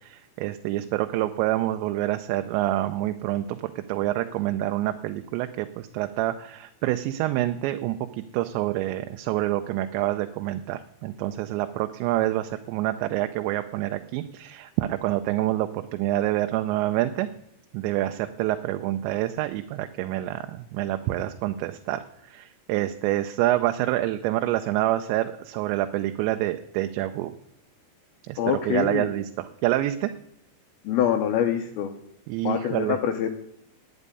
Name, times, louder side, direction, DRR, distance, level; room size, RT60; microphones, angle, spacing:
voice 1, 0.0-8.0 8.3-17.3 17.7-22.0 22.3-27.3 28.3-28.4 28.7-30.1 32.3-33.0, right 14 dB, 85° right, 7 dB, 2.9 m, -27 dB
voice 2, 28.4-29.1 30.8-31.9 32.4-33.3, left 10 dB, 75° left, 5 dB, 2.3 m, -25 dB
10.5 x 9.4 x 9.8 m, 0.77 s
omnidirectional pair, 5.1 m